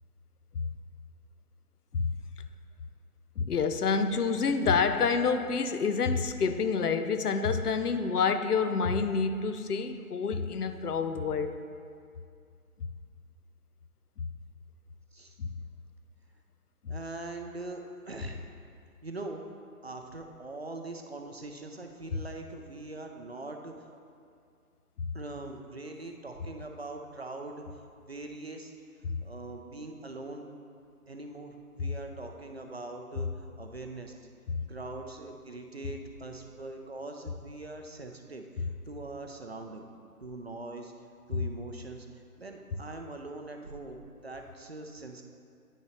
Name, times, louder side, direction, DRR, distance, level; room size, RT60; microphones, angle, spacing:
voice 1, 3.4-11.5 15.4-15.5 34.5-34.6 41.3-41.4, left 5 dB, 80° left, 9 dB, 0.7 m, -28 dB
voice 2, 16.9-18.4 19.0-19.4 19.8-24.0 25.1-27.7 28.1-28.7 29.2-30.5 31.1-34.3 34.7-39.9 40.2-40.9 41.3-45.2, right 2 dB, 45° right, 4 dB, 0.5 m, -42 dB
9.5 x 5.7 x 3.0 m, 2.3 s
figure-of-eight pair, 160°, 46 cm